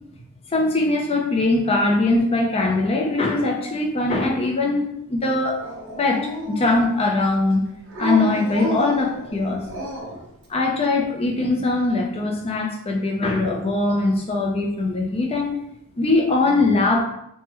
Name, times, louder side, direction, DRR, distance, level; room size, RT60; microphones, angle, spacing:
voice 1, 0.5-5.6 6.0-7.7 8.0-9.6 10.5-15.6 16.0-17.0, left 2 dB, 25° left, 0 dB, 0.5 m, -21 dB
Dog, 5.6-7.1 7.9-10.3, right 1 dB, 55° right, 0.7 m, -30 dB
3.3 x 2.1 x 3.0 m, 0.79 s
head